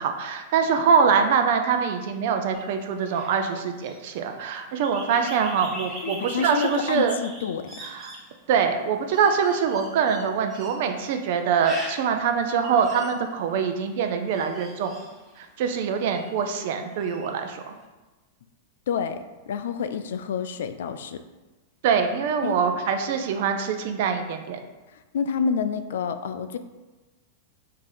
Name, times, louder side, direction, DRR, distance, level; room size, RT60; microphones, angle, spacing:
voice 1, 0.0-7.1 7.9-8.1 8.5-15.0 15.4-17.7 21.8-24.6, right 6 dB, 60° right, 5 dB, 0.6 m, -24 dB
sound 1, 2.5-16.6 16.9-17.7, right 1 dB, 15° right, 1.1 m, -42 dB
voice 2, 6.0-7.7 18.9-21.2 22.4-22.6 25.1-26.6, left 6 dB, 70° left, 10 dB, 0.3 m, -28 dB
4.7 x 2.8 x 3.8 m, 1.2 s
hypercardioid pair, 100°, 0 cm